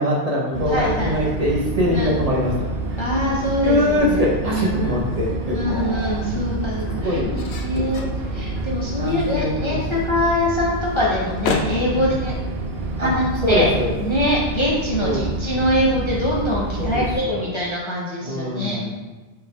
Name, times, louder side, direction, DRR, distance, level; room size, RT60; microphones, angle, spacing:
voice 1, 0.0-3.0 3.6-5.9 6.2-6.6 7.0-7.4 7.7-8.1 9.0-10.0 11.9-12.2 13.0-13.1 13.4-14.0 15.0-15.2 16.8-17.5 18.2-18.9, left 1 dB, 40° right, -4 dB, 0.8 m, -23 dB
sound 1, 0.5-17.2, right 2 dB, 70° right, 0.9 m, -28 dB
voice 2, 0.7-1.1 1.9-2.1 3.0-4.9 5.5-12.3 13.0-13.7 14.0-18.8, left 1 dB, 35° left, -5 dB, 0.5 m, -23 dB
sound 2, 4.5-14.9, left 4 dB, 80° left, 0.8 m, -36 dB
sound 3, 5.6-6.2, right 1 dB, 20° left, 1.4 m, -34 dB
4.6 x 3.2 x 3.4 m, 1.2 s
omnidirectional pair, 1.1 m